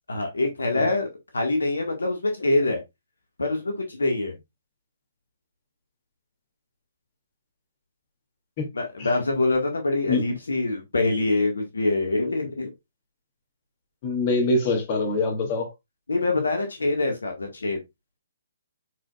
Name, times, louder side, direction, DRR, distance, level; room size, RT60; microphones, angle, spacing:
voice 1, 0.1-1.1 1.3-2.8 3.4-4.4 8.7-12.7 16.1-17.8, left 2 dB, 75° left, 1.8 m, -25 dB
voice 2, 14.0-15.7, left 2 dB, 40° left, 2.7 m, -24 dB
8.0 x 5.1 x 2.5 m
figure-of-eight pair, 130°, 0 cm